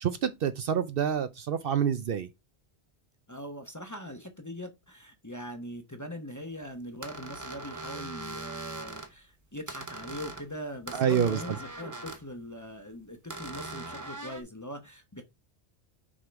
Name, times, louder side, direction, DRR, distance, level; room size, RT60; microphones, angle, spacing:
voice 1, 0.0-2.3 10.9-11.4, right 8 dB, 65° right, 0.7 m, -27 dB
voice 2, 3.3-15.2, equal, 20° left, 0.8 m, -41 dB
sound 1, 7.0-9.1 9.7-10.5 10.9-12.2 13.3-14.4, right 2 dB, 20° right, 0.8 m, -40 dB
6.2 x 3.8 x 4.4 m
omnidirectional pair, 1.1 m